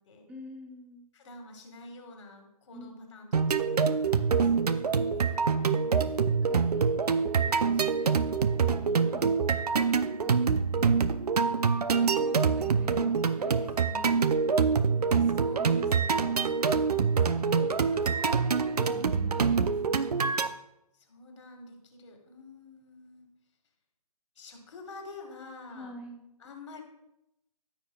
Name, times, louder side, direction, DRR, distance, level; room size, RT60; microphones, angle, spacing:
voice 1, 0.3-1.1 2.7-3.2 5.7-8.6 9.0-9.5 10.0-10.9 11.7-14.3 15.5-16.0 17.2-20.2 25.7-26.2, left 1 dB, 5° right, 0 dB, 1.2 m, -47 dB
voice 2, 1.1-5.4 15.2-17.3 20.9-23.3 24.4-25.9 26.4-26.8, left 2 dB, 50° left, 3 dB, 1.9 m, -48 dB
sound 1, 3.3-20.5, right 5 dB, 75° right, 0.5 m, -25 dB
13.5 x 4.9 x 2.3 m, 0.87 s
figure-of-eight pair, 135°, 20 cm